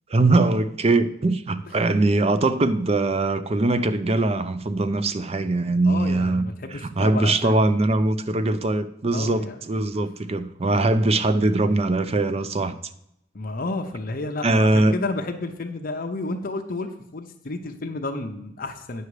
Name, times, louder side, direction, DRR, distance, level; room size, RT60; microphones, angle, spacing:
voice 1, 0.1-6.4 7.0-12.8 14.4-14.9, right 2 dB, 35° right, 0.5 m, -21 dB
voice 2, 5.9-7.6 9.1-9.6 10.7-11.1 13.3-19.0, left 2 dB, 50° left, 0.7 m, -31 dB
9.5 x 6.5 x 4.8 m
head